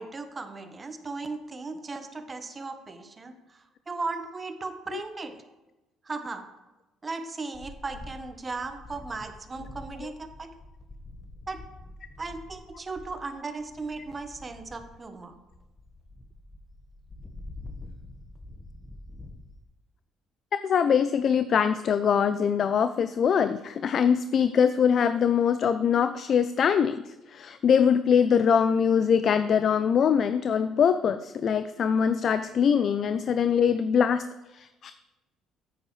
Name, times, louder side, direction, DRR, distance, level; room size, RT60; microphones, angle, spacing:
voice 1, 0.0-5.4 6.0-6.4 7.0-10.5 11.5-11.6 12.2-15.4, right 3 dB, 30° right, 7 dB, 1.1 m, -37 dB
sound 1, 7.5-19.6, left 2 dB, 25° left, 1.1 m, -46 dB
voice 2, 20.5-27.0 27.3-34.3 34.5-34.9, left 7 dB, 55° left, 11 dB, 0.4 m, -23 dB
9.1 x 8.8 x 3.2 m, 1.0 s
supercardioid pair, 75°, 0 cm